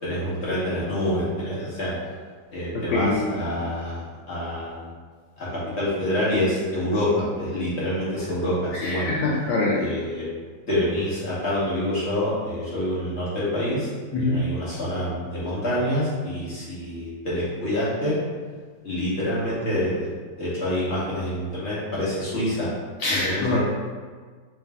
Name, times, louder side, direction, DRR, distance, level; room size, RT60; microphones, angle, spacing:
voice 1, 0.0-1.9 2.5-4.9 5.4-9.1 9.8-10.3 10.7-18.2 18.8-20.1 20.4-22.7 23.1-23.6, left 1 dB, 45° left, -9 dB, 1.0 m, -27 dB
voice 2, 2.7-3.3 8.8-9.8 14.1-14.5 23.0-23.6, left 2 dB, 75° left, -4 dB, 1.2 m, -24 dB
3.2 x 3.1 x 3.4 m, 1.5 s
omnidirectional pair, 2.3 m